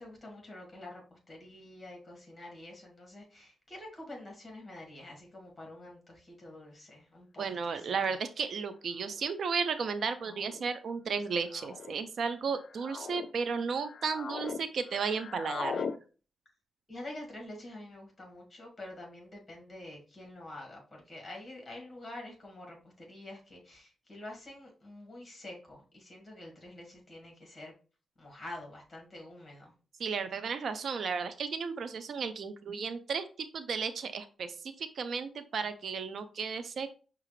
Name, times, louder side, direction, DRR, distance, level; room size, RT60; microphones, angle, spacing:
voice 1, 0.0-8.1 16.9-27.7 28.2-29.7, left 1 dB, 25° left, 0 dB, 1.7 m, -47 dB
voice 2, 7.4-15.8 30.0-36.9, right 5 dB, 65° right, 10 dB, 0.4 m, -34 dB
sound 1, 7.9-8.0 9.0-9.3 10.2-10.6 11.5-11.9 12.5-13.3 13.7-14.6 14.9-16.0, left 5 dB, 55° left, 0.3 m, -39 dB
5.6 x 2.4 x 3.0 m, 0.37 s
cardioid pair, 115°, 0 cm